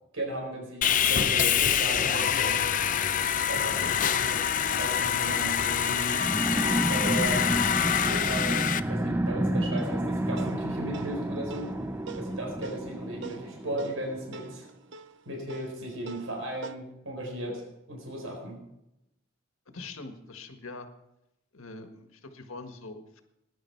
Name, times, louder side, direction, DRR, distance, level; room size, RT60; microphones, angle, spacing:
voice 1, 0.1-2.6 3.5-4.4 4.7-6.2 6.9-7.5 8.0-11.8 12.1-14.7 15.3-17.6 17.9-18.6, right 1 dB, 80° right, 1 dB, 4.4 m, -36 dB
Sawing, 0.8-8.8, left 8 dB, 40° left, 0.5 m, -26 dB
sound 1, 6.2-14.4, right 1 dB, 10° right, 0.4 m, -30 dB
sound 2, 9.8-16.8, right 5 dB, 60° right, 0.7 m, -45 dB
voice 2, 19.7-20.9 21.5-23.2, left 3 dB, 85° left, 6 dB, 1.6 m, -43 dB
19.0 x 10.5 x 4.6 m, 0.87 s
head